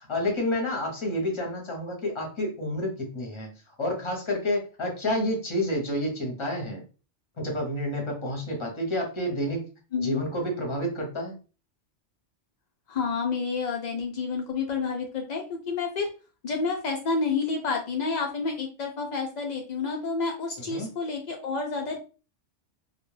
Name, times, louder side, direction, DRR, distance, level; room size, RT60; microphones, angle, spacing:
voice 1, 0.0-6.8 7.4-9.6 10.0-11.3 20.6-20.9, left 1 dB, 30° left, 0 dB, 0.7 m, -29 dB
voice 2, 9.9-10.2 12.9-16.1 16.4-22.0, left 4 dB, 75° left, 1 dB, 0.4 m, -29 dB
2.3 x 2.1 x 3.1 m, 0.35 s
omnidirectional pair, 1.3 m